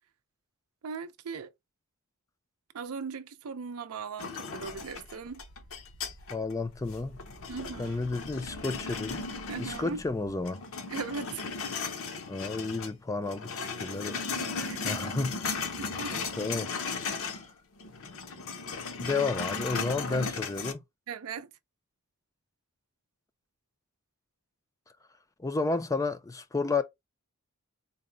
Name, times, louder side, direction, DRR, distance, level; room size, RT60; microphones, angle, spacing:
voice 1, 0.8-1.5 2.7-5.4 7.5-8.0 9.5-10.0 10.9-11.4 14.7-15.1 15.8-16.2 21.1-21.5, right 5 dB, 75° right, 0.5 m, -38 dB
sound 1, 4.2-6.5 6.9-10.1 10.4-12.9 13.2-17.5 17.8-20.7, left 4 dB, 65° left, 0.7 m, -36 dB
sound 2, 4.5-10.4, equal, 85° left, 1.1 m, -51 dB
voice 2, 6.3-7.2 7.8-10.6 12.3-15.5 16.2-16.7 19.0-20.8 25.4-26.8, left 3 dB, 15° left, 0.4 m, -32 dB
4.0 x 2.1 x 3.7 m
head